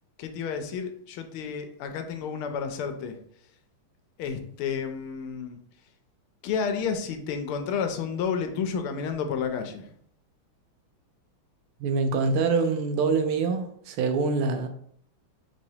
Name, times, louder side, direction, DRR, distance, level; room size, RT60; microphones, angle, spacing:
voice 1, 0.2-3.2 4.2-5.6 6.4-9.8, left 6 dB, 80° left, 7 dB, 1.4 m, -31 dB
voice 2, 11.8-14.7, right 4 dB, 80° right, 7 dB, 1.5 m, -25 dB
5.6 x 3.1 x 2.7 m, 0.64 s
omnidirectional pair, 2.4 m